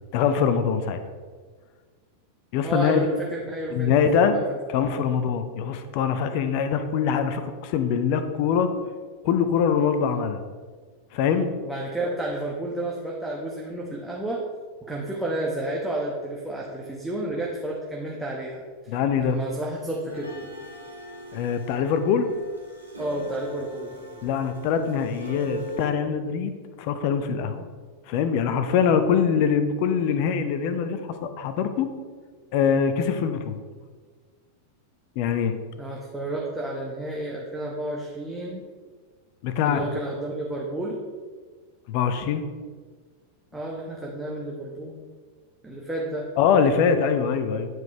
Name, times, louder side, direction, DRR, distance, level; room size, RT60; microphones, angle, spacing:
voice 1, 0.1-1.0 2.5-3.1 3.7-4.4 4.7-8.7 9.2-10.4 11.1-11.5 18.9-19.4 21.3-22.3 24.2-26.5 26.8-27.7 28.1-31.9 32.5-33.6 35.2-35.6 39.4-39.8 41.9-42.4 46.4-47.7, left 7 dB, 45° left, 9 dB, 0.7 m, -23 dB
voice 2, 2.6-4.4 4.8-5.0 11.6-14.4 14.8-20.5 23.0-24.0 35.8-38.6 39.6-41.0 43.5-45.0 45.6-46.3, right 1 dB, 5° right, -4 dB, 1.1 m, -31 dB
sound 1, 20.1-25.9, left 2 dB, 80° right, 1.7 m, -41 dB
9.4 x 4.9 x 4.4 m, 1.5 s
figure-of-eight pair, 90°, 0 cm